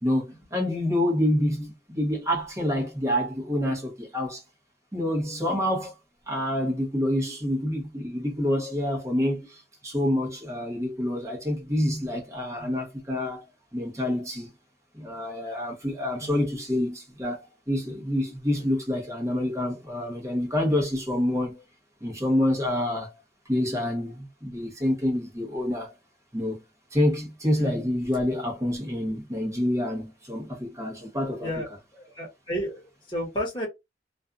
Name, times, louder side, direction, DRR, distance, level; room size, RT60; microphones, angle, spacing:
voice 1, 0.0-4.4 4.9-5.9 6.3-13.4 13.7-14.5 14.9-21.6 22.0-23.1 23.5-25.9 26.3-26.6 26.9-31.5, left 1 dB, 15° right, 0.9 m, -27 dB
voice 2, 31.9-33.7, equal, 25° left, 1.0 m, -32 dB
2.5 x 2.4 x 2.3 m
head